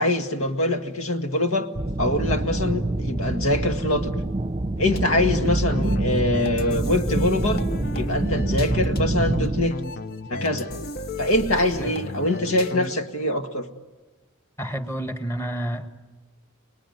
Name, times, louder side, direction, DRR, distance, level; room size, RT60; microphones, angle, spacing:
voice 1, 0.0-1.7 2.0-4.1 4.8-7.6 7.9-9.7 10.3-10.7 11.2-13.7, left 1 dB, 75° left, 7 dB, 1.9 m, -24 dB
sound 1, 1.7-9.7, right 1 dB, 25° right, 0.8 m, -26 dB
sound 2, 5.0-13.1, left 2 dB, 45° left, 1.0 m, -34 dB
voice 2, 14.6-15.9, right 1 dB, 10° left, 7 dB, 1.5 m, -29 dB
30.0 x 20.0 x 9.4 m, 1.2 s
head